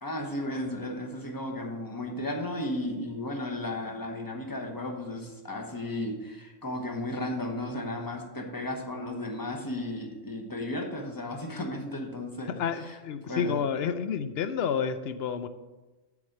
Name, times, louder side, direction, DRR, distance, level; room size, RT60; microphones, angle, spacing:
voice 1, 0.0-13.7, left 1 dB, 20° left, 2 dB, 0.9 m, -34 dB
voice 2, 12.5-15.5, left 7 dB, 65° left, 11 dB, 0.7 m, -30 dB
7.1 x 4.8 x 6.6 m, 1.2 s
omnidirectional pair, 1.3 m